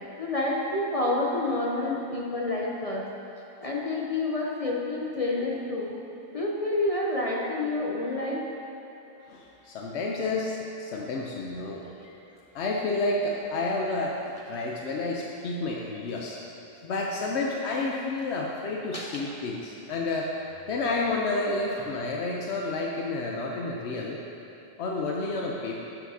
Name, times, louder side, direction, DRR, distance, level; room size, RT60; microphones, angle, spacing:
voice 1, 0.2-3.1 3.6-5.9 6.3-8.5 18.9-19.2, left 2 dB, 35° left, -3 dB, 0.8 m, -28 dB
voice 2, 9.3-11.9 12.5-16.4 16.8-20.3 20.7-24.2 24.8-25.8, left 2 dB, 90° left, -1 dB, 1.0 m, -30 dB
12.0 x 7.3 x 2.8 m, 3.0 s
omnidirectional pair, 1.1 m